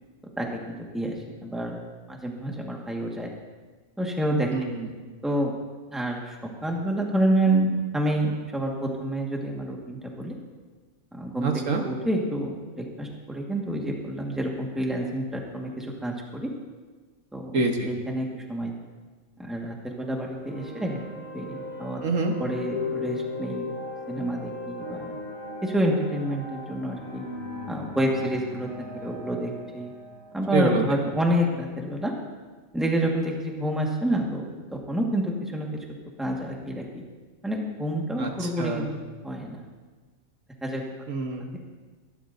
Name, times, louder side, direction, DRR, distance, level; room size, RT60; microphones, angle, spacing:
voice 1, 0.4-1.2 1.4-1.7 2.1-3.3 4.0-4.5 5.2-5.5 5.9-6.4 6.6-10.3 11.1-16.5 17.3-18.7 19.4-21.0 21.3-22.0 22.4-23.7 24.1-25.1 25.6-27.2 27.7-28.7 29.0-29.9 30.3-32.1 32.7-35.7 36.2-37.0 37.4-38.9 39.2-39.6 40.6-40.8, right 1 dB, ahead, -1 dB, 1.5 m, -28 dB
voice 2, 4.5-4.9 11.4-11.8 17.5-17.9 22.0-22.3 30.5-30.8 38.2-38.8 41.1-41.6, right 4 dB, 70° right, 3 dB, 1.5 m, -26 dB
sound 1, 20.4-31.6, left 2 dB, 45° right, 5.0 m, -38 dB
23.0 x 12.0 x 2.7 m, 1.4 s
omnidirectional pair, 1.4 m